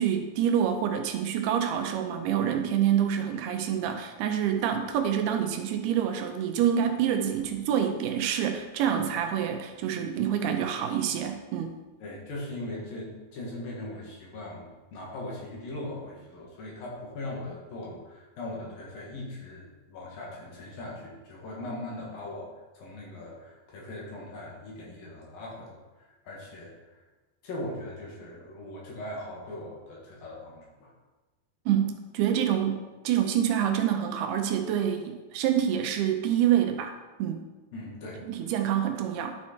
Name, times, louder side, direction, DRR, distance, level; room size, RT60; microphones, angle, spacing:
voice 1, 0.0-11.7 31.7-37.4 38.3-39.4, right 9 dB, 80° right, 5 dB, 2.7 m, -27 dB
voice 2, 12.0-27.0 27.4-30.9 37.7-38.5, left 1 dB, 65° left, -3 dB, 3.4 m, -40 dB
11.0 x 6.0 x 4.4 m, 1.2 s
omnidirectional pair, 4.7 m